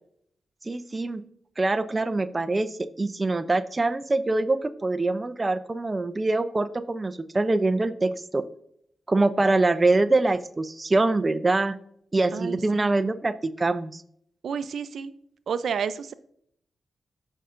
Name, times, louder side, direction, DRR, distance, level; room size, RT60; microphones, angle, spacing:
voice 1, 0.6-1.2 1.6-8.4 9.1-11.8 12.1-14.0, right 2 dB, 20° right, 9 dB, 0.4 m, -24 dB
voice 2, 12.3-12.9 14.4-15.1 15.5-16.1, right 6 dB, 70° right, 12 dB, 0.5 m, -30 dB
14.0 x 5.5 x 2.5 m, 0.67 s
wide cardioid pair, 155°, 0 cm